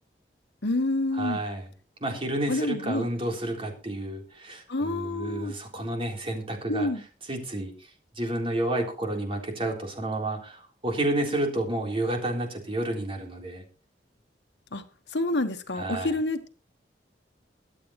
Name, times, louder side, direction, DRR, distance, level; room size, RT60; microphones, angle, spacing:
voice 1, 0.6-1.4 2.5-3.1 4.7-5.5 6.7-7.0 14.7-14.8 15.1-16.5, left 2 dB, 80° left, 1.4 m, -28 dB
voice 2, 1.1-1.7 2.0-6.9 7.3-7.9 8.2-13.6 15.7-16.2, right 1 dB, 35° right, 3.7 m, -30 dB
23.0 x 8.6 x 3.2 m
head